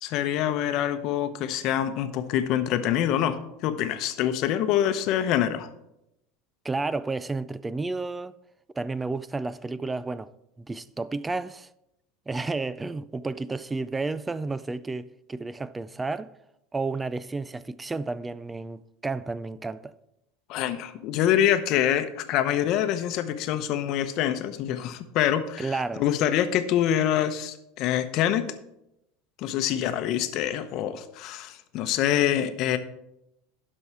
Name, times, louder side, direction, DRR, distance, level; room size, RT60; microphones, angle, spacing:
voice 1, 0.0-5.7 20.5-28.5 29.4-32.8, left 11 dB, 50° left, 0.8 m, -25 dB
voice 2, 6.6-8.3 8.8-10.3 10.6-11.7 12.3-16.3 16.7-19.9 25.6-26.0, right 3 dB, 10° right, 0.3 m, -31 dB
12.0 x 5.5 x 4.7 m
supercardioid pair, 135°, 0 cm